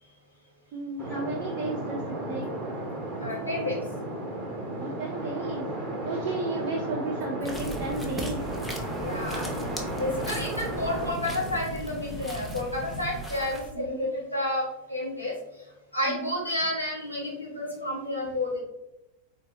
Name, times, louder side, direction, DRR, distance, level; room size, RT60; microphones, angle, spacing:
voice 1, 0.7-2.5 4.8-8.4 13.8-14.1 16.1-16.4, right 2 dB, 40° right, -1 dB, 0.5 m, -34 dB
sound 1, 1.0-11.6, right 1 dB, 20° right, 1.0 m, -34 dB
voice 2, 3.2-3.8 5.9-6.1 9.0-15.3 15.9-18.6, left 1 dB, 90° left, -6 dB, 1.3 m, -31 dB
sound 2, 7.4-13.2, left 2 dB, 65° left, 0.7 m, -41 dB
sound 3, 7.4-13.7, equal, ahead, 0.6 m, -40 dB
3.8 x 2.8 x 2.9 m, 0.96 s
figure-of-eight pair, 90°, 0 cm